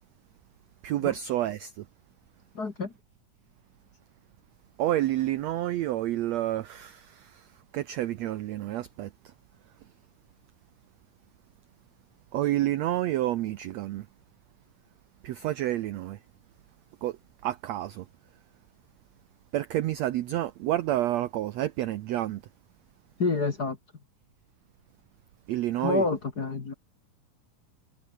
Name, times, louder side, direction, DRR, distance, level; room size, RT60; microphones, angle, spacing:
voice 1, 0.8-1.8 4.8-7.5 7.7-9.1 12.3-14.1 15.2-16.2 17.0-17.2 17.4-18.0 19.5-22.4 25.5-26.0, right 14 dB, 85° right, 1.5 m, -29 dB
voice 2, 2.5-2.9 23.2-23.8 25.8-26.7, left 3 dB, 35° left, 2.1 m, -28 dB
omnidirectional pair, 4.1 m